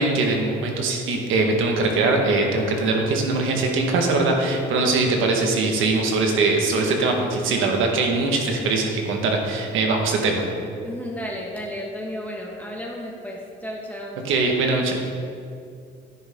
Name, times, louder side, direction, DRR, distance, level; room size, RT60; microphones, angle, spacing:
voice 1, 0.0-10.5 14.2-14.9, right 3 dB, 85° right, 2 dB, 1.6 m, -21 dB
voice 2, 10.8-14.2, equal, 10° left, -3 dB, 1.5 m, -33 dB
10.5 x 10.0 x 3.8 m, 2.4 s
cardioid pair, 90°, 20 cm